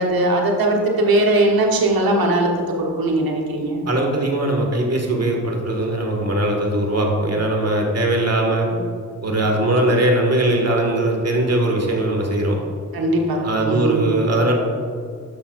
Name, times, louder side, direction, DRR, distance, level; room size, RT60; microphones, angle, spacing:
voice 1, 0.0-2.5 2.8-3.8 12.9-14.0, right 2 dB, 85° right, 0 dB, 1.3 m, -19 dB
voice 2, 3.9-8.7 9.2-12.6 13.4-14.5, right 1 dB, 45° right, 1 dB, 1.9 m, -20 dB
10.0 x 6.3 x 2.6 m, 2.2 s
cardioid pair, 40°, 35 cm